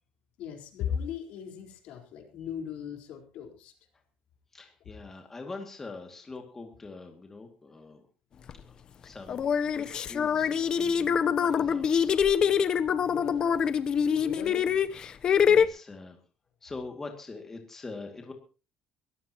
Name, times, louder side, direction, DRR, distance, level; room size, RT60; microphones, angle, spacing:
voice 1, 0.4-3.7 13.0-13.6 14.1-14.8, left 8 dB, 70° left, 2 dB, 4.4 m, -38 dB
voice 2, 4.5-8.0 8.7-8.8 9.0-12.1 15.4-16.2 16.6-18.3, left 3 dB, 15° left, 3 dB, 2.3 m, -43 dB
sound 1, 8.5-8.6 9.3-15.7, left 7 dB, 40° left, 0.8 m, -25 dB
22.5 x 15.0 x 3.0 m, 0.34 s
cardioid pair, 145°, 2 cm